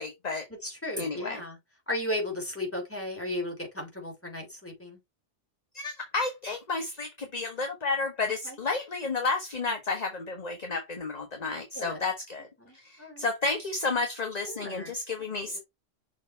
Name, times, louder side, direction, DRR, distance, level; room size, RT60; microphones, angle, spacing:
voice 1, 0.0-0.4 1.0-1.4 5.7-12.5 12.7-15.6, left 3 dB, 35° left, 1.2 m, -31 dB
voice 2, 0.6-1.6 1.9-5.0 8.5-8.6 11.7-12.0 12.6-13.2 14.4-14.9, left 1 dB, 10° left, 3.1 m, -35 dB
6.4 x 3.6 x 4.2 m
omnidirectional pair, 1.3 m